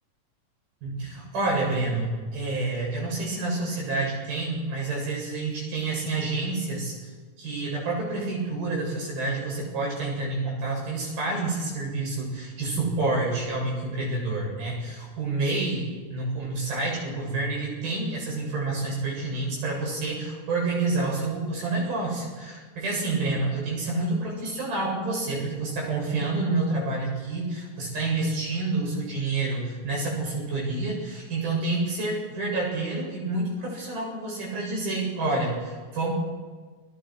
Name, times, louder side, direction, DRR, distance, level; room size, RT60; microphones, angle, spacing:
voice 1, 0.8-6.9 7.4-36.1, right 2 dB, 55° right, -3 dB, 9.3 m, -28 dB
29.5 x 21.5 x 4.9 m, 1.4 s
omnidirectional pair, 5.1 m